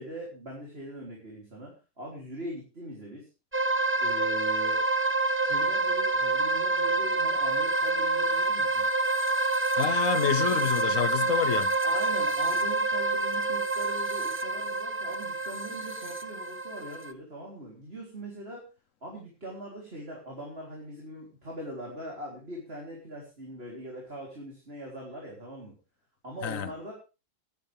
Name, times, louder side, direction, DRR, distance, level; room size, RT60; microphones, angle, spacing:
voice 1, 0.0-3.3 4.0-4.8 5.4-8.8 11.4-11.5 11.8-18.6 19.0-25.7 26.2-26.9, equal, 50° right, 3.8 m, -41 dB
sound 1, 3.5-17.1, right 2 dB, 10° right, 0.7 m, -27 dB
voice 2, 9.8-11.7 26.4-26.7, left 8 dB, 80° left, 1.3 m, -28 dB
16.0 x 12.0 x 3.4 m
omnidirectional pair, 1.3 m